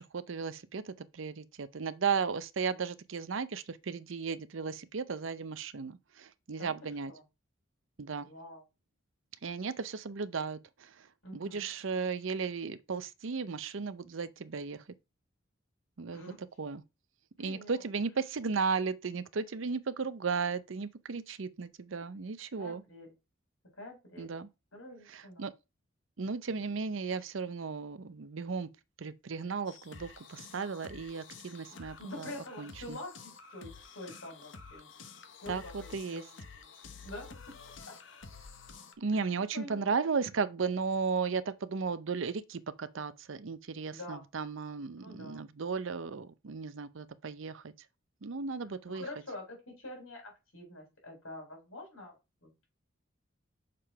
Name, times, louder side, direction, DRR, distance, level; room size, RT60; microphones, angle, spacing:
voice 1, 0.0-7.1 8.0-8.3 9.4-11.1 11.3-14.8 16.0-16.8 17.4-22.8 24.2-24.5 25.1-25.5 26.2-28.7 29.0-32.3 32.6-33.0 35.5-36.2 39.0-47.7 48.2-49.0, right 5 dB, 75° right, 0.6 m, -35 dB
voice 2, 8.2-8.6 11.2-11.7 16.1-16.4 17.4-17.7 22.6-23.1 23.8-24.3 24.7-25.4 31.7-34.9 35.4-36.4 37.0-37.3 37.9-38.0 39.5-39.9 43.9-44.2 45.0-45.4 48.9-52.2 52.4-52.7, left 1 dB, 85° left, 4.1 m, -46 dB
sound 1, 29.6-38.9, left 5 dB, 65° left, 1.0 m, -50 dB
6.7 x 3.8 x 5.6 m
head